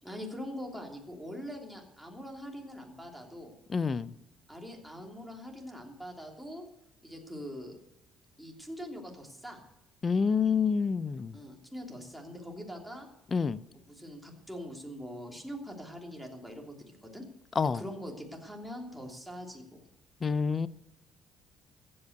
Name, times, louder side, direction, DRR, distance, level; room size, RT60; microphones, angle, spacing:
voice 1, 0.0-3.5 4.5-6.6 7.0-7.8 8.4-9.6 11.3-13.1 13.7-16.7 17.0-17.2 17.6-19.8, equal, ahead, 3.1 m, -43 dB
voice 2, 3.7-4.1 10.0-11.4 13.3-13.6 17.6-17.8 20.2-20.7, left 5 dB, 30° left, 0.6 m, -27 dB
15.0 x 8.7 x 8.1 m
cardioid pair, 130°, 0 cm